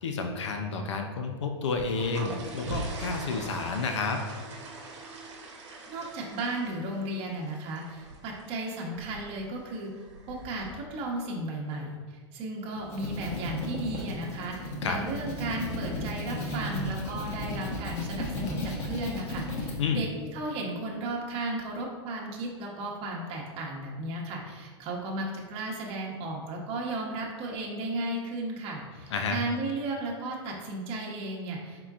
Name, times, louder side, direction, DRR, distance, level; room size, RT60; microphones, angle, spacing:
voice 1, 0.0-4.2 14.8-15.0 19.8-20.0 29.1-29.4, left 4 dB, 90° left, 4 dB, 0.5 m, -30 dB
sound 1, 1.6-10.7, right 2 dB, 85° right, 0.9 m, -42 dB
voice 2, 5.9-9.9 10.3-12.0 12.3-31.8, right 2 dB, 40° right, -2 dB, 0.9 m, -34 dB
sound 2, 12.7-19.7, left 1 dB, 45° left, 1.0 m, -35 dB
4.3 x 3.8 x 2.4 m, 1.4 s
hypercardioid pair, 125°, 15 cm